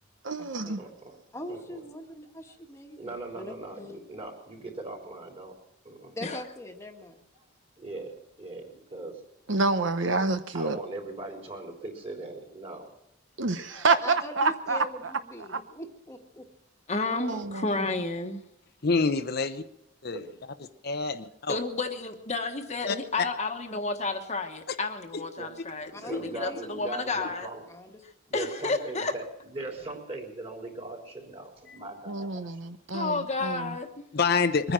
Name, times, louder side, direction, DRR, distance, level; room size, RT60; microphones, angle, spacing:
voice 1, 0.2-0.8 9.5-10.8 13.4-15.1 15.5-15.6 17.1-17.9 32.1-33.7, right 3 dB, 65° right, 9 dB, 0.9 m, -28 dB
voice 2, 0.8-1.2 1.5-1.8 3.0-5.5 5.8-6.1 7.4-7.5 7.8-9.2 10.5-12.9 17.3-17.4 20.1-20.4 25.4-25.5 26.0-27.6 28.3-29.2 29.5-32.6, right 2 dB, 30° right, 1 dB, 3.7 m, -40 dB
voice 3, 1.3-4.0 6.1-7.2 13.7-16.5 25.9-26.7 27.7-28.0, left 1 dB, 15° left, 3 dB, 1.5 m, -42 dB
voice 4, 16.9-18.4 21.5-25.9 26.2-27.5 28.3-29.1 32.9-34.0, left 3 dB, 35° left, 5 dB, 1.3 m, -31 dB
voice 5, 18.8-19.6 20.0-20.2 20.8-21.6 22.9-23.0 26.1-26.2 31.7-31.8 34.1-34.7, left 4 dB, 50° left, 9 dB, 0.7 m, -26 dB
22.5 x 10.0 x 6.1 m, 0.78 s
head